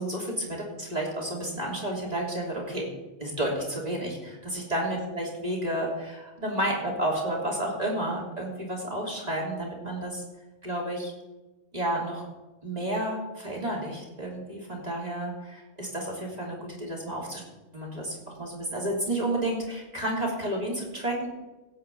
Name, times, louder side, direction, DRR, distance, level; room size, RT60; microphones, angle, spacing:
voice 1, 0.0-2.9 3.2-10.2 10.6-11.1 11.7-12.3 12.6-17.4 17.7-21.3, right 1 dB, 35° right, -3 dB, 3.2 m, -31 dB
16.5 x 5.7 x 8.3 m, 1.1 s
omnidirectional pair, 1.3 m